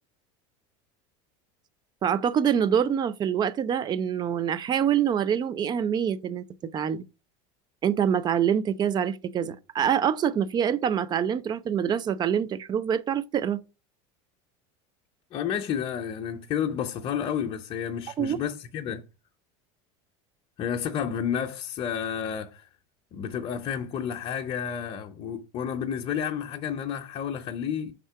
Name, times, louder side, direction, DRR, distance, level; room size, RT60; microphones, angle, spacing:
voice 1, 2.0-7.0 7.8-13.6 18.2-18.4, right 8 dB, 25° right, 0.5 m, -25 dB
voice 2, 15.3-19.0 20.6-22.6 23.1-27.9, left 8 dB, 35° left, 0.6 m, -31 dB
5.5 x 3.7 x 5.6 m
supercardioid pair, 130°, 16 cm